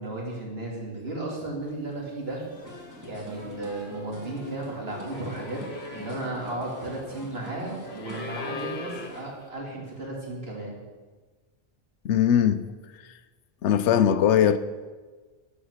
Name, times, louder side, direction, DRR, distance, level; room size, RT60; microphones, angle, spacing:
voice 1, 0.0-2.4 3.0-5.6 5.9-10.8, right 2 dB, 55° right, 2.8 m, -34 dB
sound 1, 1.9-2.1 2.4-9.5, left 4 dB, 60° left, 1.4 m, -42 dB
sound 2, 2.5-9.2, equal, 15° right, 1.9 m, -44 dB
voice 2, 12.0-12.6 13.0-13.2 13.6-14.6, left 9 dB, 80° left, 0.9 m, -20 dB
13.5 x 5.6 x 6.5 m
omnidirectional pair, 1.2 m